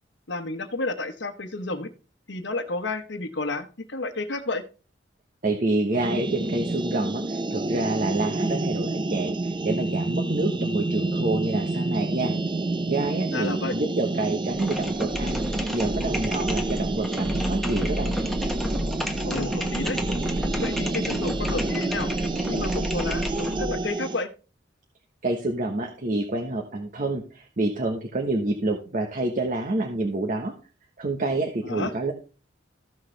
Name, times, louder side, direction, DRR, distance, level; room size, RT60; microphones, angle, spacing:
voice 1, 0.3-1.9 2.3-4.6 13.3-13.7 19.2-20.0 20.6-22.1 22.5-24.3 31.6-31.9, left 2 dB, 70° left, 10 dB, 1.1 m, -31 dB
voice 2, 5.4-12.3 12.9-18.2 25.2-30.5 31.0-32.1, right 2 dB, 45° right, 3 dB, 1.1 m, -28 dB
sound 1, 5.9-24.2, right 2 dB, 25° right, 0.5 m, -29 dB
sound 2, 14.5-23.8, left 1 dB, ahead, 1.2 m, -31 dB
14.5 x 6.2 x 3.3 m, 0.34 s
head